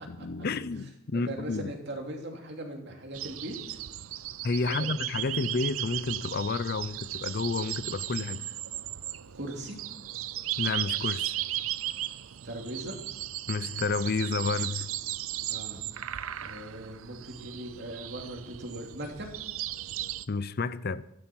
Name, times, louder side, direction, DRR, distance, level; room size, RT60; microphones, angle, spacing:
voice 1, 0.1-1.7 4.4-8.5 10.6-11.3 13.5-14.9 20.3-21.0, left 4 dB, 50° left, 0.5 m, -30 dB
voice 2, 1.1-3.8 4.7-4.9 9.3-9.8 12.4-12.9 15.5-15.8 16.4-19.3, right 1 dB, 55° right, 2.8 m, -39 dB
sound 1, 3.1-20.2, right 13 dB, 85° right, 0.6 m, -36 dB
14.0 x 11.5 x 6.1 m
head